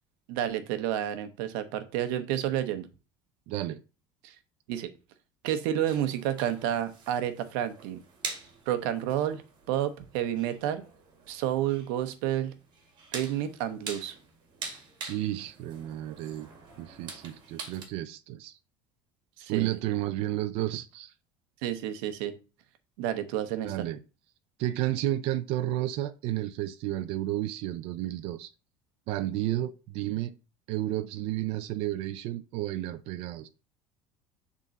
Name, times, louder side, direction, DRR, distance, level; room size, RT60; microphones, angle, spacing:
voice 1, 0.3-2.9 4.2-4.3 4.7-4.9 5.4-8.0 8.7-9.4 9.7-10.8 11.3-12.5 13.1-14.2 19.4-19.7 21.6-22.3 23.0-23.8, right 11 dB, 90° right, 0.9 m, -30 dB
voice 2, 3.5-3.8 15.1-16.5 16.8-18.6 19.5-21.1 23.6-24.0 24.6-28.5 29.1-30.3 30.7-33.5, right 14 dB, 60° right, 0.5 m, -32 dB
sound 1, 5.8-17.9, right 5 dB, 45° right, 1.8 m, -45 dB
7.5 x 3.7 x 4.0 m
cardioid pair, 145°, 11 cm